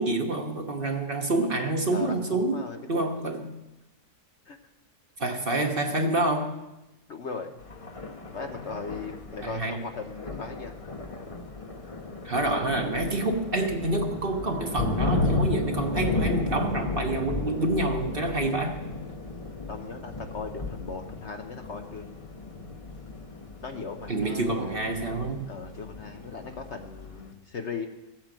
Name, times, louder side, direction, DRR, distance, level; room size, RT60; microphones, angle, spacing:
voice 1, 0.0-3.5 5.2-6.6 9.4-9.8 12.2-18.8 24.1-25.4, right 2 dB, 35° right, 3 dB, 1.3 m, -27 dB
voice 2, 1.9-3.4 4.5-4.6 7.1-7.6 8.3-10.7 19.7-22.2 23.6-24.9 25.5-27.9, left 4 dB, 50° left, 4 dB, 1.0 m, -38 dB
Thunder, 7.6-27.3, left 3 dB, 25° left, 0.9 m, -34 dB
15.0 x 8.9 x 7.5 m, 1.0 s
omnidirectional pair, 1.7 m